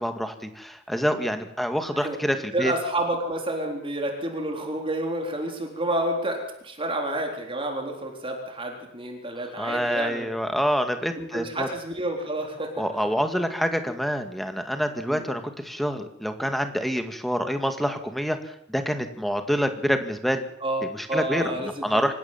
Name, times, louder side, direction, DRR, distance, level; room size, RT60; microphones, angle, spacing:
voice 1, 0.0-2.7 9.6-11.7 12.8-18.4 18.7-20.5 20.9-22.1, equal, ahead, 7 dB, 2.1 m, -27 dB
voice 2, 2.5-10.3 11.1-13.1 15.1-15.2 20.6-21.9, right 1 dB, 25° right, 2 dB, 4.0 m, -29 dB
26.5 x 15.5 x 7.5 m, 0.75 s
head